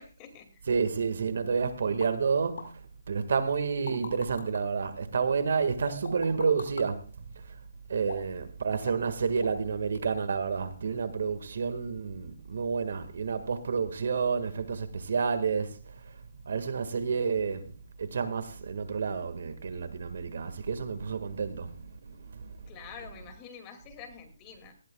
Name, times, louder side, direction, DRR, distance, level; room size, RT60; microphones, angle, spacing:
voice 1, 0.0-0.7 22.7-24.7, left 7 dB, 20° left, 2.4 m, -47 dB
voice 2, 0.7-2.7 3.1-7.2 7.9-15.8 16.5-17.7 18.0-22.5, right 5 dB, 65° right, 1.8 m, -30 dB
sound 1, 2.0-2.1 2.6-2.7 3.5-4.6 5.9-6.9 8.0-8.4 8.8-9.1 9.4-9.7 9.9-10.0, left 3 dB, 75° left, 7.0 m, -40 dB
19.0 x 16.0 x 2.3 m
hypercardioid pair, 165°, 0 cm